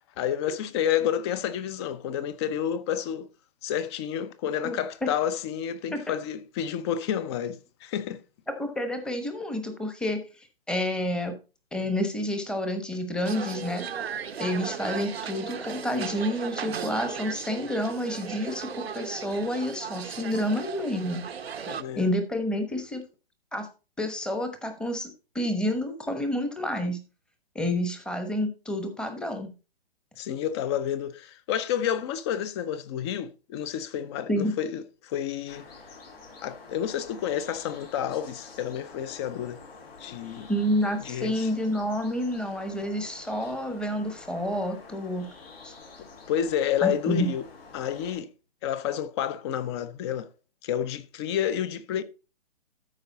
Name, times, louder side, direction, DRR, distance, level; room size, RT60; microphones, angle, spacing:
voice 1, 0.2-3.3 3.6-8.2 21.7-22.0 30.2-35.7 36.4-39.6 40.0-40.5 41.0-41.5 46.0-47.4 47.7-48.3 48.6-50.3 50.6-52.0, left 9 dB, 25° left, 0.7 m, -30 dB
voice 2, 4.6-5.1 5.9-6.0 8.6-10.2 10.7-11.4 11.7-13.9 14.4-21.3 22.0-23.0 23.5-23.7 24.0-27.0 27.5-29.5 34.3-34.5 40.5-45.3 45.6-45.7 46.8-47.3, left 1 dB, 5° left, 1.0 m, -29 dB
sound 1, 13.2-21.8, right 7 dB, 80° right, 0.9 m, -36 dB
sound 2, 35.5-48.2, left 4 dB, 70° left, 5.8 m, -48 dB
13.5 x 4.8 x 4.0 m
hypercardioid pair, 135°, 31 cm